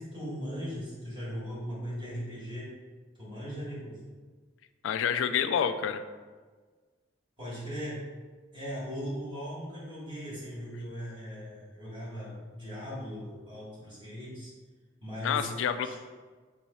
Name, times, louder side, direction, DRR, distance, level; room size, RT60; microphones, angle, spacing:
voice 1, 0.0-2.8 3.2-4.0 7.4-8.1 8.5-14.5 15.0-15.5 15.8-16.0, equal, 25° right, -8 dB, 1.3 m, -38 dB
voice 2, 4.8-6.0 15.2-16.0, left 8 dB, 85° left, 10 dB, 0.3 m, -28 dB
3.7 x 3.0 x 4.1 m, 1.4 s
head